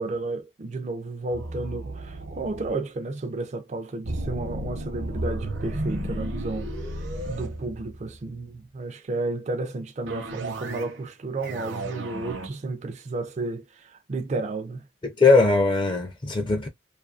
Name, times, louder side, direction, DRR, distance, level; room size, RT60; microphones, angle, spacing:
voice 1, 0.0-14.9, right 3 dB, 35° right, 0.4 m, -32 dB
sound 1, 1.3-2.7 4.0-8.3 10.1-11.0 11.3-12.5, right 1 dB, 65° right, 0.7 m, -33 dB
voice 2, 15.0-16.7, left 3 dB, 25° left, 0.4 m, -20 dB
2.6 x 2.4 x 2.3 m
head